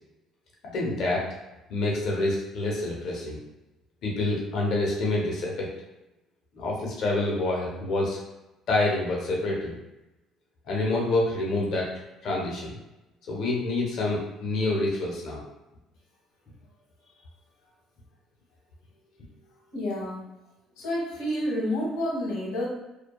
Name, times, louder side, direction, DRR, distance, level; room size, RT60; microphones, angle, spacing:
voice 1, 0.6-1.2 1.7-3.4 4.0-5.7 6.5-8.2 8.7-9.8 10.7-11.9 12.2-12.7 13.3-15.4, left 2 dB, 65° left, -2 dB, 0.8 m, -27 dB
voice 2, 19.7-20.2 20.8-22.6, left 1 dB, 85° left, -3 dB, 1.1 m, -29 dB
2.7 x 2.2 x 2.2 m, 0.97 s
supercardioid pair, 85°, 0 cm